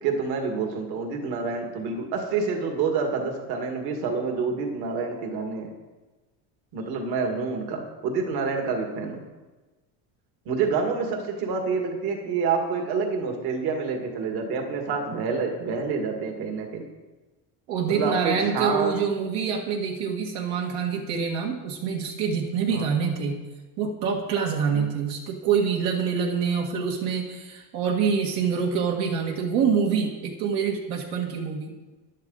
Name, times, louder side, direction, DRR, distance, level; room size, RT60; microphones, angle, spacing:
voice 1, 0.0-5.7 6.7-9.2 10.5-16.8 17.9-18.9 22.7-22.9 24.7-24.8, right 5 dB, 60° right, 2 dB, 2.3 m, -28 dB
voice 2, 17.7-23.4 23.8-31.9, right 6 dB, 80° right, 0 dB, 2.1 m, -26 dB
14.5 x 11.5 x 4.1 m, 1.2 s
cardioid pair, 170°, 43 cm